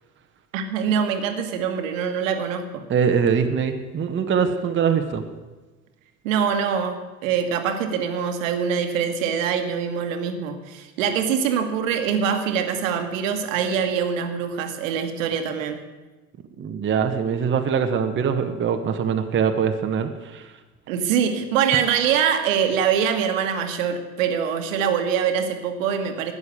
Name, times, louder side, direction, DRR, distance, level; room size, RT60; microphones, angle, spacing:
voice 1, 0.5-2.8 6.2-15.8 20.9-26.3, right 7 dB, 60° right, 7 dB, 1.6 m, -24 dB
voice 2, 2.9-5.2 16.6-20.5, right 7 dB, 25° right, 6 dB, 1.2 m, -23 dB
12.5 x 9.7 x 8.4 m, 1.2 s
figure-of-eight pair, 65°, 44 cm